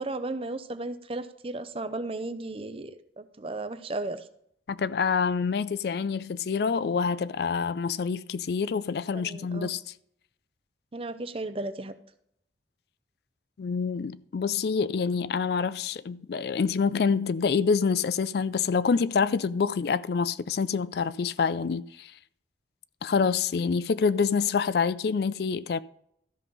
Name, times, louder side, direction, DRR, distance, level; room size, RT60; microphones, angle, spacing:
voice 1, 0.0-4.2 9.1-9.7 10.9-11.9, right 2 dB, 30° right, 0.6 m, -35 dB
voice 2, 4.7-9.9 13.6-22.1 23.0-25.8, left 5 dB, 60° left, 0.4 m, -27 dB
13.5 x 5.5 x 5.4 m
head